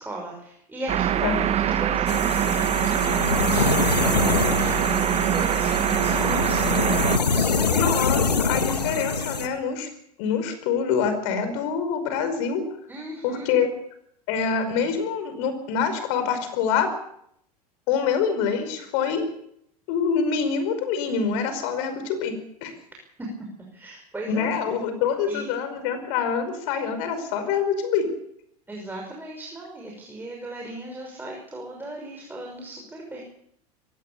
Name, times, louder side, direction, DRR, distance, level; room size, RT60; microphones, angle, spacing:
voice 1, 0.0-7.0 7.3-7.9 12.9-13.5 23.7-24.5 25.3-25.6 28.7-33.2, right 1 dB, 10° right, -1 dB, 6.0 m, -37 dB
sound 1, 0.9-7.2, right 10 dB, 30° right, 1.2 m, -23 dB
sound 2, 2.1-9.5, left 4 dB, 85° left, 1.9 m, -25 dB
voice 2, 7.8-9.9 10.2-12.6 13.2-13.7 14.3-16.9 17.9-19.3 19.9-22.3 22.6-22.7 24.3-28.1, left 6 dB, 55° left, 9 dB, 5.3 m, -25 dB
23.5 x 18.0 x 6.9 m, 0.71 s
figure-of-eight pair, 85°, 20 cm